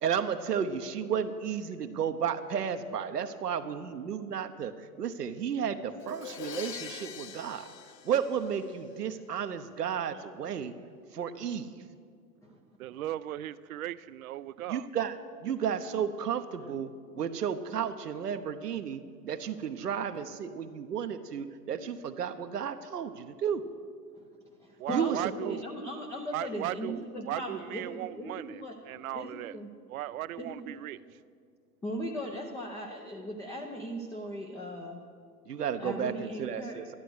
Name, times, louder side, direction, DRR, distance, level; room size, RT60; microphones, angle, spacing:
voice 1, 0.0-7.7 8.0-10.7 11.1-11.8 14.7-15.1 15.4-23.6 24.9-25.2 25.4-25.6 35.5-36.9, right 8 dB, 75° right, 9 dB, 1.0 m, -33 dB
Crash cymbal, 6.0-9.0, left 8 dB, 85° left, 0.8 m, -43 dB
voice 2, 12.8-14.9 24.8-25.6 26.3-29.5 29.9-31.0, right 13 dB, 60° right, 17 dB, 0.6 m, -37 dB
voice 3, 24.6-28.8 29.1-29.7 30.4-30.7 31.8-35.0 35.8-36.8, equal, 5° left, 1 dB, 0.5 m, -38 dB
12.5 x 11.5 x 6.3 m, 2.1 s
figure-of-eight pair, 105°, 48 cm